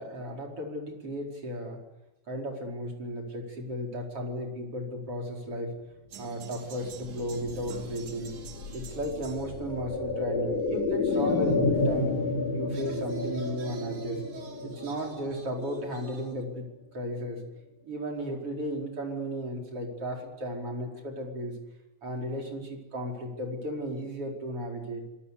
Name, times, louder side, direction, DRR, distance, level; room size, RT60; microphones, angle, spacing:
voice 1, 0.0-1.8 2.3-5.7 6.2-8.3 8.7-12.1 12.5-14.2 14.6-16.7 16.9-17.4 17.8-21.6 22.0-25.0, equal, 45° right, 1 dB, 5.7 m, -35 dB
sound 1, 6.1-11.8 12.5-16.5, right 7 dB, 75° right, 3.9 m, -45 dB
sound 2, 6.7-16.5 16.8-16.9, left 3 dB, 70° left, 4.4 m, -31 dB
26.0 x 22.5 x 8.4 m, 1.0 s
omnidirectional pair, 3.6 m